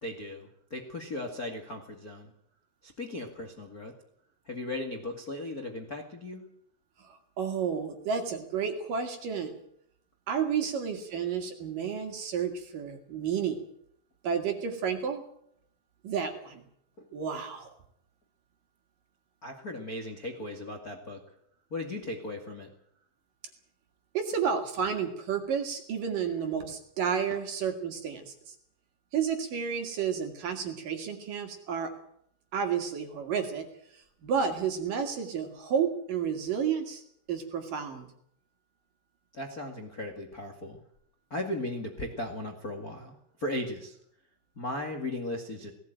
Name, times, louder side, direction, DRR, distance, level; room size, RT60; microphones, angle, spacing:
voice 1, 0.0-2.3 2.8-3.9 4.4-6.4 17.0-17.1 19.4-21.2 21.7-22.7 27.3-27.4 39.3-40.8 41.3-44.0 44.5-45.7, left 1 dB, 70° left, 3 dB, 0.8 m, -37 dB
voice 2, 7.0-9.5 10.3-13.6 14.2-15.2 16.0-16.6 17.1-17.7 24.1-28.5 29.1-31.9 32.5-33.7 33.9-37.0 37.3-38.1, right 7 dB, 55° right, 5 dB, 2.9 m, -31 dB
18.5 x 17.5 x 9.0 m, 0.71 s
omnidirectional pair, 5.7 m